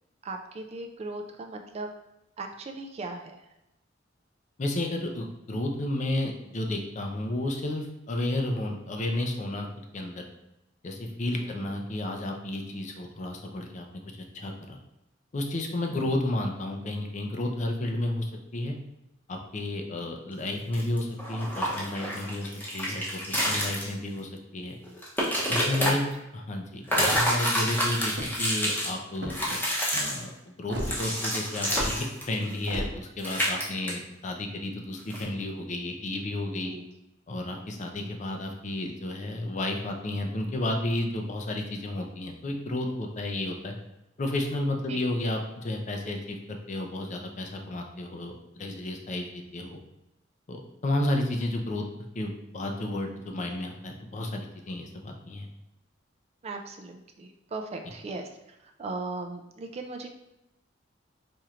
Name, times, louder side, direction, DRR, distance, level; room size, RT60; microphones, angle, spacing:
voice 1, 0.2-1.9 2.4-3.4 11.4-11.7 15.9-16.1 25.8-26.0 36.6-36.8 38.0-38.1 44.9-45.0 56.4-58.3 58.8-60.1, right 3 dB, 35° right, 4 dB, 0.3 m, -38 dB
voice 2, 4.6-9.7 9.9-10.2 10.8-13.8 14.3-14.8 15.3-18.8 19.3-24.8 25.5-29.4 29.9-30.3 30.6-36.7 37.3-43.7 44.2-49.8 50.5-51.8 52.2-55.5, left 1 dB, 40° left, 3 dB, 0.5 m, -32 dB
sound 1, 20.7-23.9 24.2-24.3 24.8-25.9 26.9-28.9 29.3-30.2 30.7-32.8 33.2-33.6 33.9-34.0 35.1-35.2, equal, 10° left, 0.8 m, -28 dB
sound 2, 27.1-27.5 28.1-28.5 29.2-29.6 30.7-30.9 31.7-31.9 32.7-32.9, equal, 60° right, 0.7 m, -34 dB
4.3 x 3.0 x 2.4 m, 0.91 s
head